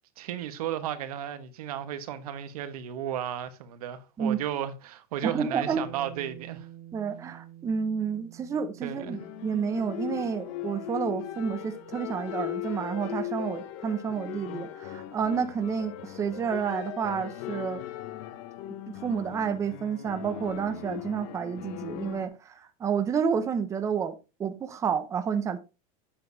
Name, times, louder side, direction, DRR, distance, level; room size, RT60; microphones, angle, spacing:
voice 1, 0.2-6.7 8.8-9.2, right 10 dB, 90° right, 1.2 m, -34 dB
voice 2, 5.2-5.8 6.9-17.8 19.0-24.1 24.4-25.6, right 7 dB, 15° right, 0.7 m, -30 dB
Bass guitar, 5.7-12.0, right 12 dB, 70° right, 1.8 m, -49 dB
sound 1, 8.9-22.3, left 13 dB, 50° left, 1.0 m, -38 dB
8.1 x 7.8 x 2.7 m
supercardioid pair, 160°, 19 cm